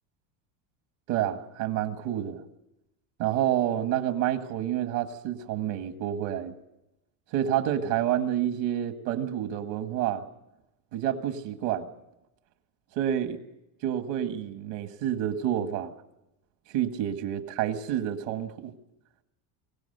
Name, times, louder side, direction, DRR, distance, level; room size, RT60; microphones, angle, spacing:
voice 1, 1.1-2.4 3.2-6.6 7.3-10.2 10.9-11.9 12.9-13.4 13.8-15.9 16.7-18.7, right 11 dB, 60° right, 7 dB, 1.8 m, -28 dB
23.5 x 18.0 x 6.7 m, 0.90 s
cardioid pair, 170°, 47 cm